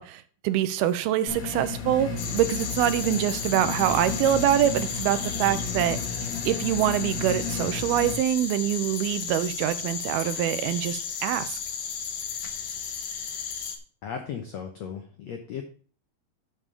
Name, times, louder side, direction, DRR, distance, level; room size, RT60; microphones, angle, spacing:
voice 1, 0.0-6.0 6.5-11.6, right 12 dB, 85° right, 12 dB, 2.5 m, -25 dB
sound 1, 1.3-8.1, left 4 dB, 50° left, 2.4 m, -33 dB
sound 2, 2.2-13.8, left 7 dB, 65° left, 1.6 m, -34 dB
voice 2, 14.0-15.6, left 7 dB, 85° left, 5 dB, 1.5 m, -36 dB
8.5 x 5.5 x 6.6 m, 0.43 s
omnidirectional pair, 4.5 m